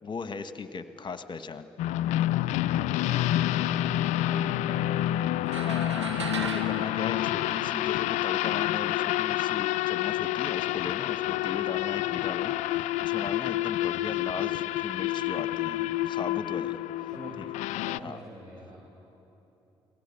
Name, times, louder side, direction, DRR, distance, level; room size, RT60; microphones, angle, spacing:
voice 1, 0.0-1.7 5.5-16.8 17.4-17.5 18.0-18.2, left 5 dB, 35° left, 11 dB, 1.5 m, -38 dB
sound 1, 1.8-18.0, left 14 dB, 55° left, 0.5 m, -28 dB
voice 2, 2.8-5.3 17.1-17.4 17.8-18.8, right 1 dB, 30° right, -3 dB, 5.9 m, -45 dB
sound 2, 5.5-8.1, right 4 dB, 85° right, 1.3 m, -37 dB
29.5 x 21.0 x 9.0 m, 3.0 s
figure-of-eight pair, 45°, 14 cm